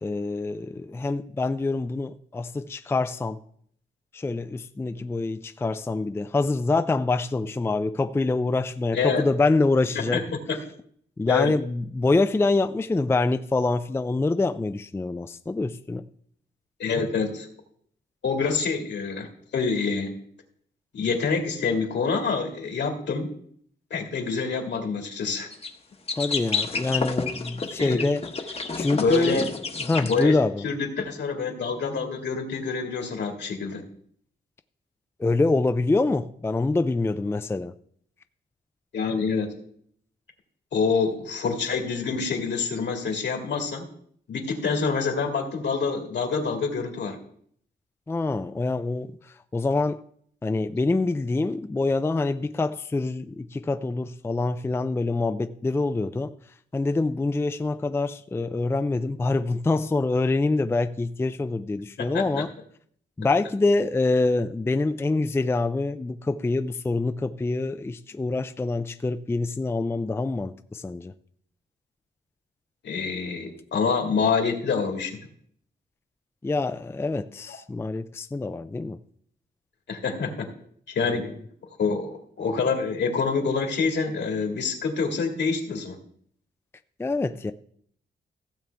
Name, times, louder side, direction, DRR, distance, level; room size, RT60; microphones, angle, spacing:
voice 1, 0.0-3.4 4.1-10.2 11.2-16.1 26.2-29.5 29.9-30.6 35.2-37.7 48.1-50.0 50.4-56.3 56.7-62.5 63.2-71.1 76.4-79.0 81.1-81.3 87.0-87.5, left 3 dB, 15° left, 0.4 m, -25 dB
voice 2, 8.9-9.2 10.0-10.2 10.5-10.6 11.3-11.5 16.8-17.5 18.2-19.3 19.5-20.1 20.9-23.3 23.9-25.5 27.8-28.0 28.9-29.5 30.1-30.4 30.6-33.8 38.9-39.5 40.7-43.9 44.3-47.2 62.0-62.4 72.8-75.2 77.5-77.6 79.9-80.5 80.9-81.3 81.8-86.0, left 5 dB, 75° left, 2.1 m, -26 dB
sound 1, 25.5-25.7 26.1-30.2, left 4 dB, 35° left, 1.0 m, -30 dB
15.5 x 7.1 x 3.4 m
cardioid pair, 110°, 19 cm